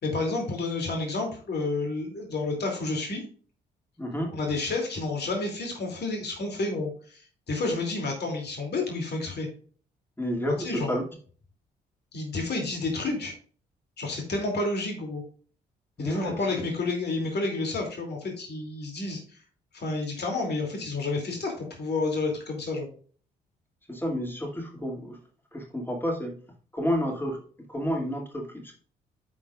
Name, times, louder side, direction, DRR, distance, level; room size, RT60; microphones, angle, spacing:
voice 1, 0.0-3.2 4.3-7.2 7.5-9.5 10.6-11.0 12.1-13.3 14.0-15.2 16.0-19.2 19.7-22.9, left 3 dB, 50° left, 1 dB, 2.8 m, -30 dB
voice 2, 4.0-4.3 10.2-11.0 16.0-16.4 23.9-25.2 25.5-26.4 26.7-27.4 27.7-28.7, equal, 10° left, 1 dB, 2.4 m, -30 dB
13.5 x 4.6 x 2.5 m, 0.42 s
hypercardioid pair, 45°, 21 cm